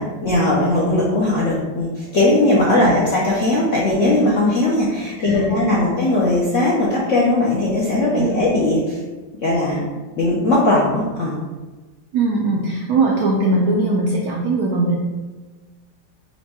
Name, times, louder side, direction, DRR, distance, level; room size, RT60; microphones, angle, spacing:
voice 1, 0.0-9.0 9.4-9.9 10.2-11.4, left 2 dB, 70° left, -5 dB, 0.7 m, -18 dB
voice 2, 5.2-5.9 8.2-8.5 12.1-15.0, right 3 dB, 75° right, -2 dB, 0.8 m, -20 dB
4.4 x 2.2 x 4.2 m, 1.2 s
omnidirectional pair, 2.1 m